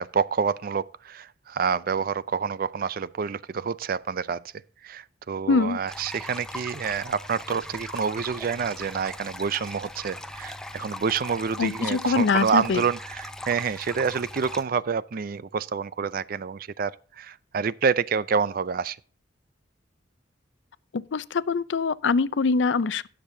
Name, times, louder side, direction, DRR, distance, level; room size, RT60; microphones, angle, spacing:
voice 1, 0.0-4.4 4.8-19.0, right 6 dB, 50° right, 0.4 m, -28 dB
voice 2, 5.5-5.8 11.6-12.8 20.9-23.1, left 4 dB, 70° left, 0.5 m, -23 dB
sound 1, 5.9-14.6, left 1 dB, 5° left, 0.6 m, -39 dB
18.0 x 6.7 x 2.7 m
head